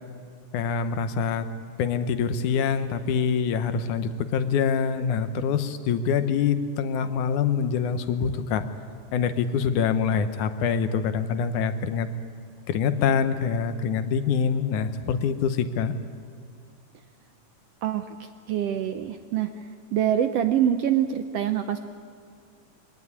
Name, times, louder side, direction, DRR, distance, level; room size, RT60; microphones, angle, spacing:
voice 1, 0.5-1.5 1.8-8.6 9.1-12.1 12.7-15.9, left 6 dB, 80° left, 10 dB, 2.4 m, -25 dB
voice 2, 18.5-19.5 19.9-21.8, right 10 dB, 75° right, 8 dB, 1.5 m, -24 dB
22.5 x 17.0 x 9.7 m, 2.3 s
omnidirectional pair, 3.5 m